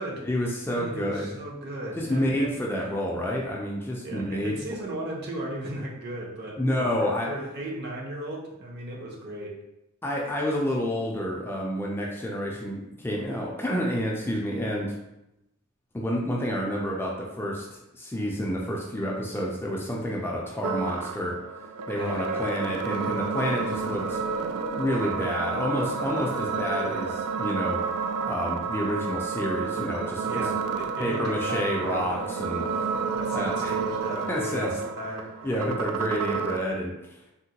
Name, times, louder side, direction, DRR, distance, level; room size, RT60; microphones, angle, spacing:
voice 1, 0.2-1.3 2.0-4.6 6.6-7.3 10.0-14.9 15.9-21.4 21.9-24.2 24.7-27.8 28.2-30.4 31.0-32.6 33.3-33.7 34.3-34.7 35.4-36.9, equal, 10° left, -3 dB, 0.3 m, -29 dB
voice 2, 0.7-2.5 4.0-9.5 21.9-22.5 30.3-32.3 32.6-32.8 33.1-35.7, right 1 dB, 50° right, -2 dB, 0.7 m, -36 dB
sound 1, 20.6-36.6, right 5 dB, 85° right, 0.3 m, -30 dB
3.6 x 2.1 x 2.8 m, 0.90 s
head